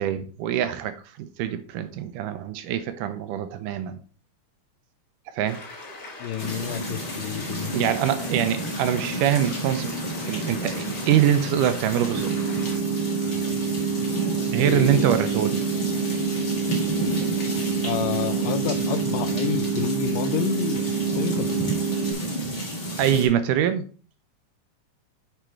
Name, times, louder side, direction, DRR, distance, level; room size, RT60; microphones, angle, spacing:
voice 1, 0.0-4.0 5.3-5.7 7.7-9.9 10.3-12.3 14.5-15.6 23.0-23.9, right 10 dB, 80° right, 2.1 m, -24 dB
sound 1, 5.4-12.8, left 2 dB, 35° left, 1.6 m, -41 dB
voice 2, 6.2-8.1 14.6-15.1 17.8-20.9 21.2-21.7, left 9 dB, 85° left, 2.2 m, -29 dB
sound 2, 6.4-23.3, right 1 dB, 55° left, 0.8 m, -31 dB
sound 3, 12.1-22.1, right 6 dB, 65° right, 1.1 m, -27 dB
6.9 x 4.8 x 4.4 m
omnidirectional pair, 3.8 m